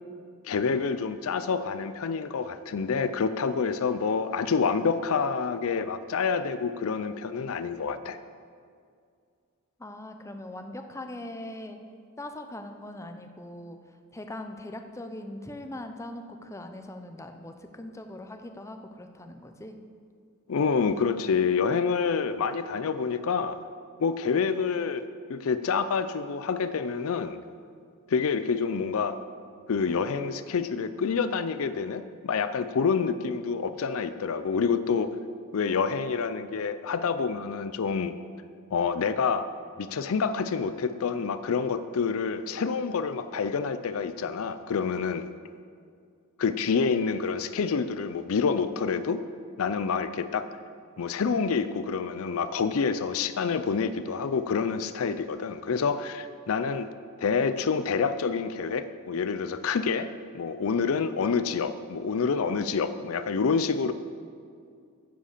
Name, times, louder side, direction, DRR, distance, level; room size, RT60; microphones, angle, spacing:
voice 1, 0.4-8.2 20.5-23.6 24.0-25.0 25.3-27.4 28.1-29.2 29.7-35.1 35.5-38.1 38.7-39.5 39.8-45.2 46.4-49.2 49.6-50.5 51.0-56.9 57.2-60.1 60.3-63.9, left 5 dB, 70° left, 12 dB, 0.5 m, -27 dB
voice 2, 9.8-11.8 12.2-13.8 14.1-19.8, left 1 dB, 15° left, 6 dB, 0.7 m, -41 dB
10.0 x 8.0 x 6.6 m, 2.3 s
head